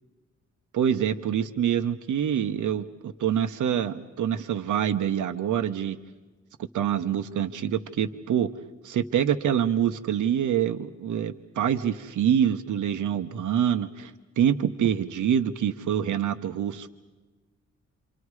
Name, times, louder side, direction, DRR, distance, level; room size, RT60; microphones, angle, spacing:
voice 1, 0.7-6.0 6.7-8.5 8.8-16.9, right 9 dB, 85° right, 9 dB, 0.9 m, -26 dB
28.0 x 26.5 x 4.8 m, 1.2 s
wide cardioid pair, 145°, 29 cm